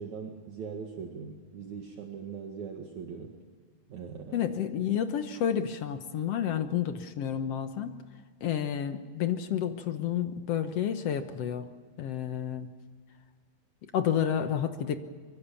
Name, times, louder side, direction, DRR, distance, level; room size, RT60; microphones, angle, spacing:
voice 1, 0.0-3.3 3.9-4.5, right 6 dB, 55° right, 2 dB, 3.0 m, -40 dB
voice 2, 4.3-7.9 8.4-11.7 12.0-12.7 13.9-15.0, left 9 dB, 70° left, 8 dB, 1.5 m, -30 dB
24.5 x 23.5 x 7.1 m, 1.6 s
omnidirectional pair, 4.2 m